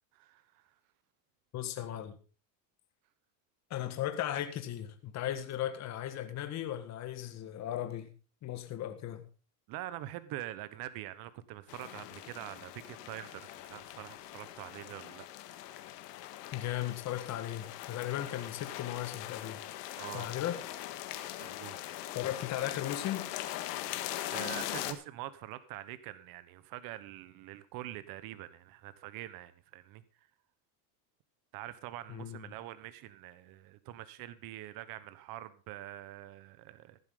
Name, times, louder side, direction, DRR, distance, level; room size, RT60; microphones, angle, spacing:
voice 1, 0.1-0.7 9.7-15.9 20.0-20.3 21.4-22.0 24.3-30.0 31.5-37.0, right 14 dB, 45° right, 1.2 m, -45 dB
voice 2, 1.5-2.2 3.7-8.1 8.4-9.2 16.5-19.6 20.1-20.6 22.1-23.3 32.1-32.4, left 12 dB, 35° left, 1.7 m, -36 dB
sound 1, 11.7-24.9, left 14 dB, 75° left, 1.8 m, -41 dB
15.5 x 11.5 x 3.8 m
supercardioid pair, 145°, 48 cm